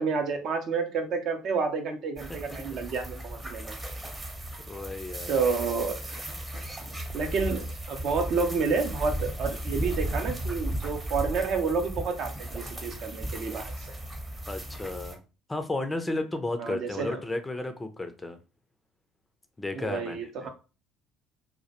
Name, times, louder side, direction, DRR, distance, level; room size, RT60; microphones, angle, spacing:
voice 1, 0.0-3.8 5.3-6.3 7.1-13.7 16.6-17.2 19.7-20.5, right 5 dB, 55° right, 5 dB, 0.5 m, -30 dB
sound 1, 2.2-15.1, right 1 dB, 20° right, 0.7 m, -35 dB
voice 2, 4.7-5.4 14.5-15.2 15.5-18.4 19.6-20.5, left 2 dB, 15° left, 7 dB, 0.4 m, -33 dB
2.2 x 2.1 x 2.8 m, 0.32 s
figure-of-eight pair, 55°, 0 cm